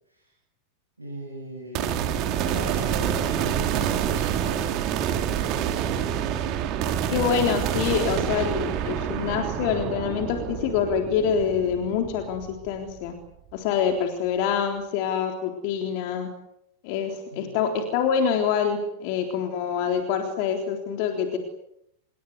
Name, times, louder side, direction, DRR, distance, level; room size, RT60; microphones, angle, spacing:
voice 1, 1.0-2.1 2.4-4.6 17.3-17.6, right 1 dB, 80° right, 1 dB, 7.4 m, -38 dB
sound 1, 1.7-13.1, right 9 dB, 40° right, 3.2 m, -27 dB
voice 2, 7.1-13.1 13.5-16.3 16.8-21.4, left 7 dB, 45° left, 4 dB, 3.7 m, -26 dB
27.5 x 22.5 x 8.2 m, 0.80 s
figure-of-eight pair, 90°, 0 cm